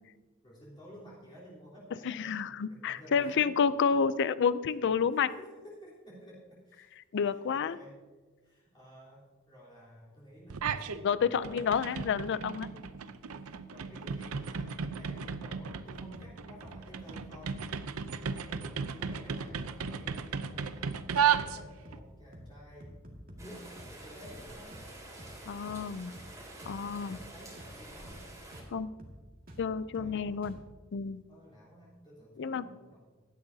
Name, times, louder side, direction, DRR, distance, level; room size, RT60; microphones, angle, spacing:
voice 1, 0.4-3.4 4.2-4.3 4.7-4.8 5.1-6.9 7.2-7.9 8.4-12.1 12.7-13.1 13.7-17.6 18.1-21.1 21.4-23.0 23.4-24.8 26.9-28.2 29.8-30.6 31.3-33.0, equal, 25° left, -9 dB, 3.7 m, -53 dB
voice 2, 2.0-5.3 7.1-7.8 11.0-12.7 25.4-26.1 26.7-27.2 28.7-28.9 29.6-30.6 30.9-31.2 32.4-32.6, left 6 dB, 55° left, 16 dB, 0.4 m, -29 dB
sound 1, 10.5-11.0 11.3-22.0, right 7 dB, 90° right, 0.6 m, -34 dB
sound 2, 15.7-15.9 16.1-16.4 16.6-16.8 17.1-17.3 17.6-17.8 18.0-18.3 18.5-18.7 19.0-19.2 19.5-19.7 20.0-20.2 20.4-20.6 20.9-21.1 21.4-21.6 21.9-22.1 22.3-22.5 22.8-23.5 23.8-24.0 24.2-24.5 24.7-24.9 25.2-25.4 25.7-25.9 26.1-26.4 26.6-26.8 27.1-27.3 27.6-27.8 28.0-28.3 28.5-28.7 29.0-29.2 29.5-29.7 29.9-30.2 30.4-30.6, equal, 45° right, 2.0 m, -49 dB
Rain, 23.4-28.6, right 1 dB, 15° right, 2.8 m, -49 dB
16.5 x 12.0 x 2.8 m, 1.4 s
head